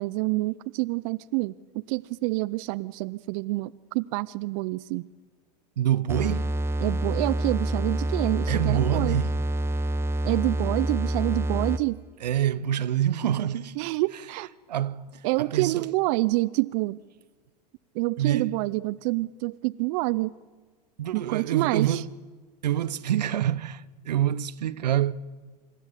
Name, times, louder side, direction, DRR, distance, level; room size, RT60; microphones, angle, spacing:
voice 1, 0.0-1.5 1.9-5.0 6.8-9.2 10.2-12.0 13.8-14.5 15.2-17.0 18.0-20.3 21.1-22.0, right 22 dB, 50° right, 0.6 m, -27 dB
voice 2, 5.8-6.5 8.5-9.4 12.2-13.8 14.1-14.3 14.7-15.9 18.2-18.6 21.0-22.1 22.6-25.1, right 11 dB, 85° right, 0.8 m, -26 dB
sound 1, 6.1-12.0, right 1 dB, 10° right, 1.2 m, -27 dB
25.5 x 13.0 x 9.7 m
hypercardioid pair, 105°, 21 cm